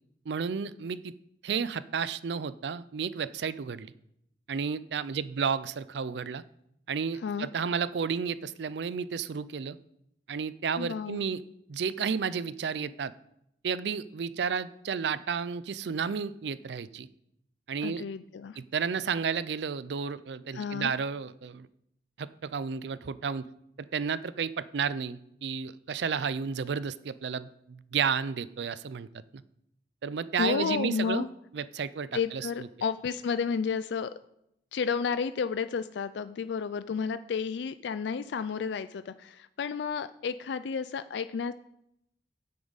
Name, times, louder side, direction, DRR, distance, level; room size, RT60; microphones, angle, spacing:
voice 1, 0.3-1.1 1.4-3.9 4.5-6.4 6.9-9.8 10.3-11.4 11.7-13.1 13.6-17.1 17.7-18.0 18.6-21.7 22.2-23.5 23.8-29.1 29.3-29.4 30.0-31.3 31.5-32.5, right 6 dB, 70° right, 16 dB, 0.4 m, -32 dB
voice 2, 10.8-11.3 17.8-18.6 20.5-20.9 30.4-31.3 32.1-34.1 34.7-41.5, left 6 dB, 75° left, 12 dB, 0.4 m, -31 dB
9.5 x 8.6 x 4.0 m, 0.77 s
head